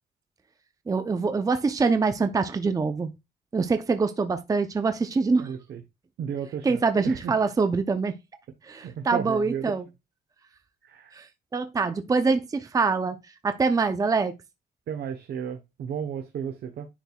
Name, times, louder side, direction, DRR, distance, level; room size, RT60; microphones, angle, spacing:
voice 1, 0.9-3.1 3.5-5.5 6.6-8.2 8.7-9.9 11.1-11.2 11.5-13.2 13.4-14.3, right 4 dB, 20° right, 0.6 m, -24 dB
voice 2, 5.4-5.8 6.2-7.3 8.7-9.7 10.8-11.1 14.9-16.9, right 8 dB, 75° right, 1.0 m, -34 dB
10.0 x 4.6 x 2.3 m
cardioid pair, 135°, 17 cm